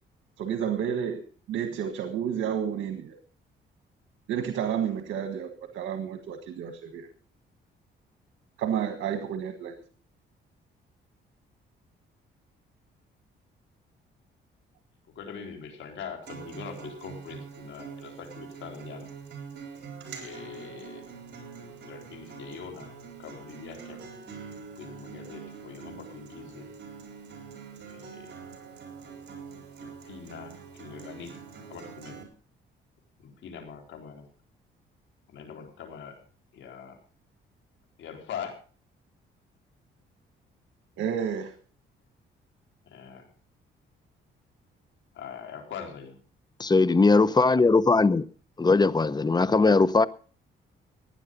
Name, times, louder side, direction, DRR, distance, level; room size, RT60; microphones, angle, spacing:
voice 1, 0.4-1.2 1.5-3.2 4.3-7.1 8.6-9.8 41.0-41.5, right 8 dB, 85° right, 1.5 m, -30 dB
voice 2, 15.2-19.1 20.2-21.0 21.6-22.9 23.2-24.0 24.7-26.6 27.9-28.3 29.8-31.4 31.7-32.2 33.2-34.3 35.3-36.2 36.5-37.0 38.0-38.6 42.9-43.3 45.1-46.2, left 6 dB, 70° left, 3.9 m, -42 dB
Acoustic guitar, 16.2-32.2, right 6 dB, 60° right, 4.2 m, -44 dB
voice 3, 46.6-48.2 48.6-50.1, left 3 dB, 20° left, 0.8 m, -20 dB
15.5 x 10.0 x 5.3 m
cardioid pair, 90°, 20 cm